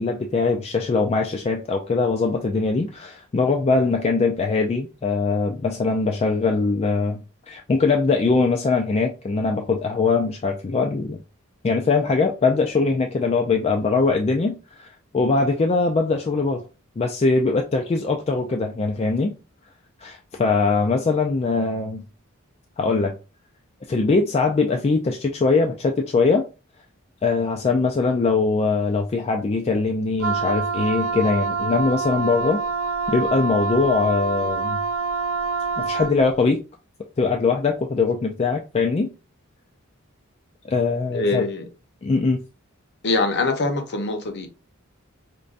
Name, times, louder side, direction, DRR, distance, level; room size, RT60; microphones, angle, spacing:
voice 1, 0.0-11.2 11.6-14.9 15.1-16.6 17.0-19.3 20.0-22.0 22.8-23.2 23.9-26.5 27.2-32.6 33.1-34.8 35.8-36.6 37.2-39.1 40.6-41.4 42.0-42.4, left 4 dB, 30° left, 0.3 m, -22 dB
Wind instrument woodwind instrument, 30.2-36.2, right 4 dB, 70° right, 0.5 m, -26 dB
voice 2, 41.1-41.6 43.0-44.5, left 3 dB, 55° left, 0.7 m, -23 dB
5.1 x 2.2 x 2.5 m
head